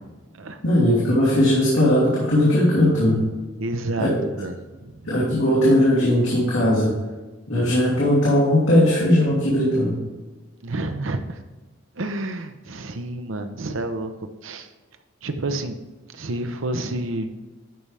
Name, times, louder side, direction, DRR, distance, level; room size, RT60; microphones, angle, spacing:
voice 1, 0.6-3.2 4.0-4.1 5.0-6.9 7.5-10.0, left 1 dB, 75° left, -9 dB, 2.9 m, -18 dB
voice 2, 3.6-4.9 10.6-11.4 12.0-14.1 14.4-14.7 15.2-15.8 16.1-17.3, right 2 dB, 75° right, 8 dB, 0.7 m, -29 dB
12.0 x 5.5 x 3.4 m, 1.2 s
head